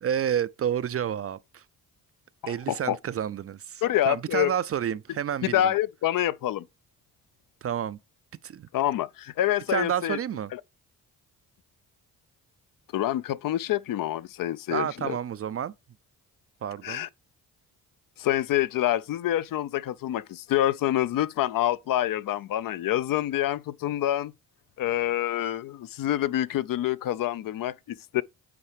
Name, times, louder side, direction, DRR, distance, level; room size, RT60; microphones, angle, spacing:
voice 1, 0.0-1.6 2.5-5.7 7.6-8.0 8.4-8.7 9.7-10.5 14.7-15.7 16.6-17.1, right 9 dB, 35° right, 0.4 m, -30 dB
voice 2, 2.4-3.0 3.8-4.5 5.4-6.7 8.7-10.2 10.5-10.6 12.9-15.2 16.8-17.1 18.2-24.3 24.8-28.2, left 13 dB, 55° left, 0.5 m, -27 dB
8.5 x 4.6 x 3.3 m
hypercardioid pair, 50°, 42 cm